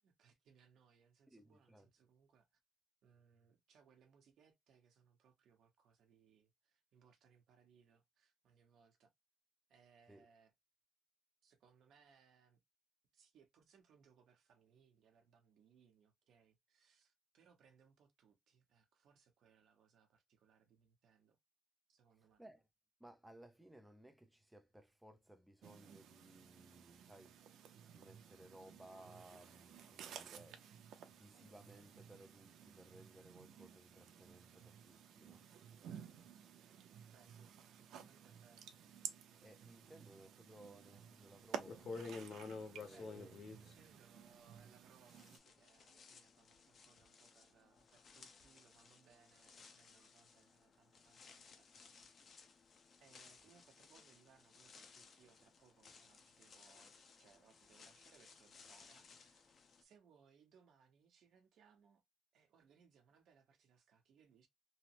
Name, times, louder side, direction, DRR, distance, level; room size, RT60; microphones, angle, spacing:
voice 1, 0.0-2.6 3.0-9.1 9.7-10.5 11.4-12.6 13.1-21.4 21.9-22.4 35.9-36.3 37.1-39.1 39.9-40.0 42.8-52.2 53.0-59.5 59.8-62.0 62.3-64.5, right 6 dB, 65° right, 0.9 m, -70 dB
voice 2, 1.3-1.9 10.1-10.3 22.4-22.6 23.0-27.4 27.9-30.6 31.1-35.4 39.4-41.9 42.8-43.7, right 1 dB, 5° right, 0.5 m, -61 dB
sound 1, 25.6-45.4, right 8 dB, 90° right, 0.5 m, -54 dB
sound 2, 41.1-41.2 41.6-44.8 45.1-59.8, left 4 dB, 45° left, 0.6 m, -55 dB
3.1 x 2.0 x 2.9 m
cardioid pair, 165°, 0 cm